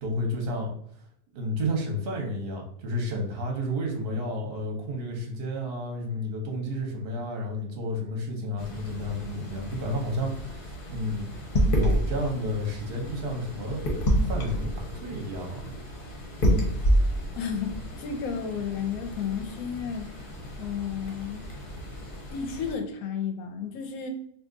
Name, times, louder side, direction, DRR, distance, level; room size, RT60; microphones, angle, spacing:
voice 1, 0.0-0.7 1.3-11.3 11.7-13.8 14.2-15.8, equal, 50° right, 1 dB, 0.8 m, -31 dB
sound 1, 8.6-22.8, equal, 45° left, 0.8 m, -30 dB
voice 2, 17.4-20.1 20.6-21.5 22.3-24.1, left 7 dB, 75° left, 5 dB, 1.0 m, -32 dB
2.7 x 2.4 x 3.7 m, 0.70 s
omnidirectional pair, 1.7 m